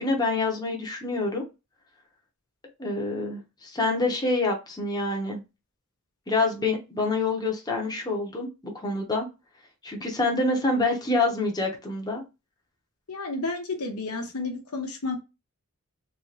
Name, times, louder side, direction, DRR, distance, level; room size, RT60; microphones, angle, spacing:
voice 1, 0.0-1.4 2.8-5.4 6.3-8.5 8.7-9.3 9.8-12.2, left 2 dB, 20° left, 0 dB, 0.9 m, -26 dB
voice 2, 13.1-15.2, left 3 dB, 85° left, 3 dB, 1.0 m, -31 dB
3.3 x 3.0 x 2.8 m, 0.26 s
head